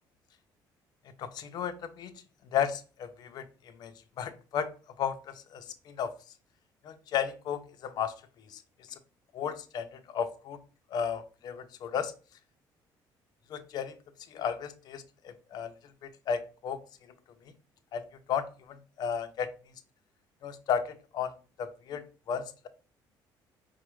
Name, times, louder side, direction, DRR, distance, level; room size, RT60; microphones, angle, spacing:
voice 1, 1.2-2.1 2.5-3.4 3.8-4.7 5.0-6.1 6.8-8.1 8.5-8.6 8.9-9.0 9.3-10.6 10.9-12.1 13.5-13.9 14.3-15.7 16.0-16.8 17.9-19.5 20.4-21.3 21.6-22.7, left 7 dB, 55° left, 9 dB, 0.5 m, -34 dB
4.5 x 2.1 x 4.5 m, 0.36 s
cardioid pair, 135°, 8 cm